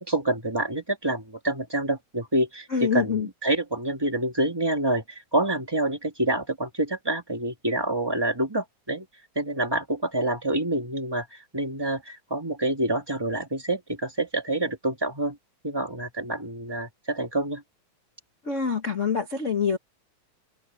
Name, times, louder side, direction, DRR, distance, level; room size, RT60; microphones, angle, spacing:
voice 1, 0.0-9.1 9.4-15.4 15.6-17.6, right 1 dB, 10° right, 2.1 m, -27 dB
voice 2, 2.7-3.3 18.4-19.8, left 6 dB, 40° left, 1.1 m, -25 dB
omnidirectional pair, 3.5 m